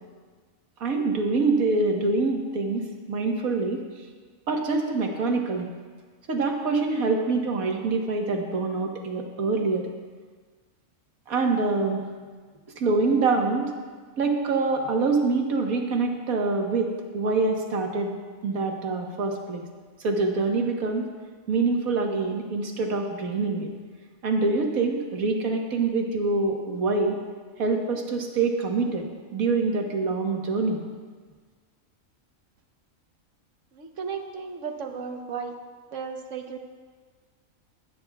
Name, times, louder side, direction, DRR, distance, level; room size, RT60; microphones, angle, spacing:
voice 1, 0.8-3.8 4.5-5.7 6.3-9.9 11.3-12.0 12.8-13.7 14.2-18.2 18.4-19.6 20.0-21.1 21.5-23.7 24.2-27.2 27.6-30.8, right 3 dB, 90° right, 1 dB, 1.7 m, -25 dB
voice 2, 33.7-35.5 35.9-36.6, right 6 dB, 65° right, 5 dB, 1.3 m, -34 dB
23.5 x 9.5 x 2.3 m, 1.5 s
omnidirectional pair, 1.4 m